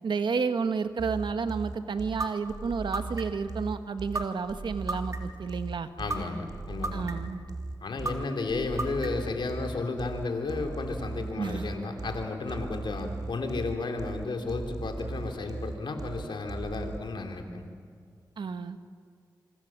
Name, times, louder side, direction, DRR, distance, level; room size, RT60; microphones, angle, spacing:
voice 1, 0.0-5.9 6.9-7.4 11.4-11.7 18.4-18.8, right 5 dB, 85° right, 9 dB, 1.3 m, -31 dB
sound 1, 1.0-17.0, right 3 dB, 60° right, 2.3 m, -39 dB
sound 2, 2.2-2.3 2.9-3.4 4.1-4.2 4.9-5.4 6.1-6.2 6.8-7.3 8.0-8.1 8.8-9.3, right 2 dB, 40° right, 3.4 m, -31 dB
voice 2, 6.0-7.1 7.8-17.7, left 3 dB, 85° left, 4 dB, 3.1 m, -33 dB
26.5 x 24.5 x 7.5 m, 2.1 s
cardioid pair, 55°, 8 cm